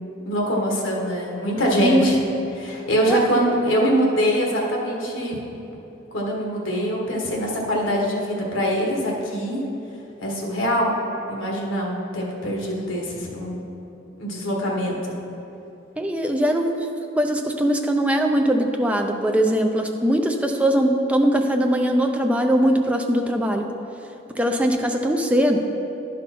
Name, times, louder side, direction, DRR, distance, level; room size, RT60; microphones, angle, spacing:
voice 1, 0.0-2.2 2.6-5.4 6.1-9.6 10.2-10.9 11.3-13.6 14.2-15.2, equal, 75° left, -1 dB, 1.5 m, -23 dB
voice 2, 1.8-2.2 3.1-3.2 16.0-16.7 17.2-23.7 24.4-25.6, equal, 5° right, 3 dB, 0.4 m, -21 dB
11.0 x 5.3 x 4.2 m, 2.9 s
head